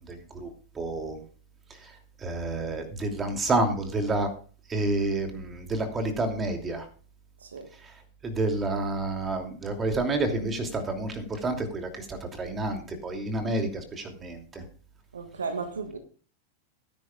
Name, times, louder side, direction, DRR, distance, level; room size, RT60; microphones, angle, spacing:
voice 1, 0.1-0.5 0.7-1.2 2.2-4.3 4.7-6.9 8.2-14.6, right 2 dB, 20° right, 2.8 m, -29 dB
voice 2, 15.1-16.0, right 4 dB, 70° right, 1.5 m, -34 dB
18.0 x 10.5 x 2.4 m
figure-of-eight pair, 90°, 0 cm